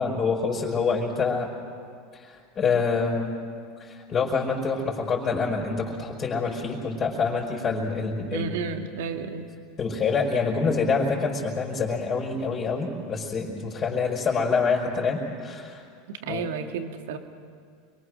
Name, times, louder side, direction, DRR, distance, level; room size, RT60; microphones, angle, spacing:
voice 1, 0.0-1.5 2.1-3.4 3.8-8.5 9.8-15.8 16.3-16.5, left 4 dB, 35° left, -3 dB, 5.6 m, -26 dB
voice 2, 8.3-9.5 16.1-17.2, right 5 dB, 70° right, 6 dB, 2.0 m, -32 dB
30.0 x 23.0 x 6.5 m, 2.2 s
hypercardioid pair, 85°, 0 cm